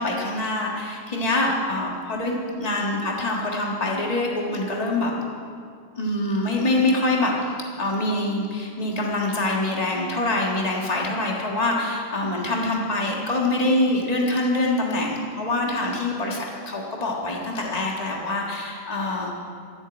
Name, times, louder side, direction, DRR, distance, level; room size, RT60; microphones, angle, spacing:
voice 1, 0.0-5.2 6.0-16.4 16.7-19.3, left 2 dB, 80° left, -2 dB, 0.3 m, -25 dB
14.5 x 8.2 x 9.0 m, 2.2 s
omnidirectional pair, 3.7 m